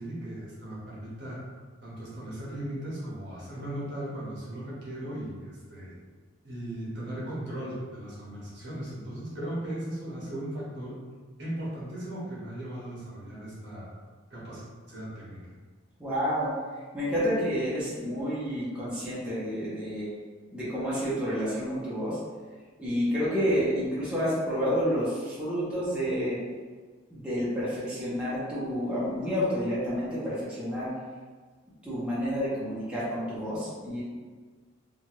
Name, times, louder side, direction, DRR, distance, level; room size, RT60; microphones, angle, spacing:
voice 1, 0.0-1.5 1.8-5.9 6.4-11.0 11.4-13.9 14.3-15.5, right 1 dB, 60° right, -7 dB, 1.0 m, -37 dB
voice 2, 16.0-16.5 16.9-20.1 20.5-22.2 22.8-26.4 27.1-30.9 31.8-34.0, equal, 5° right, -11 dB, 0.8 m, -29 dB
2.9 x 2.4 x 2.9 m, 1.5 s
head